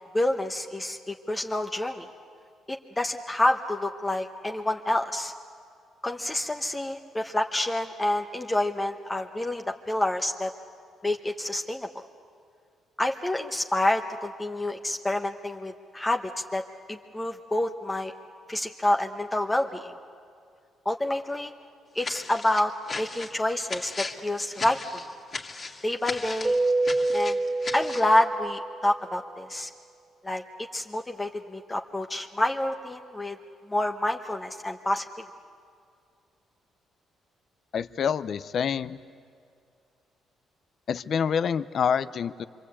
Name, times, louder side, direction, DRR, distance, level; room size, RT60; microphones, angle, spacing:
voice 1, 0.1-2.1 2.7-5.3 6.0-10.5 11.0-12.0 13.0-16.2 16.5-16.6 16.9-18.1 18.5-19.9 20.8-21.5 21.9-24.8 25.8-26.6 27.1-27.4 27.7-29.7 30.2-30.4 30.7-33.4 33.7-35.0, left 1 dB, 15° left, 3 dB, 1.1 m, -28 dB
sound 1, 22.0-28.1, left 3 dB, 35° left, 2.3 m, -37 dB
Keyboard (musical), 26.4-29.0, right 2 dB, 25° right, 1.0 m, -27 dB
voice 2, 37.7-39.0 40.9-42.4, left 7 dB, 60° left, 14 dB, 0.6 m, -27 dB
26.0 x 25.0 x 8.5 m, 2.4 s
cardioid pair, 90°, 0 cm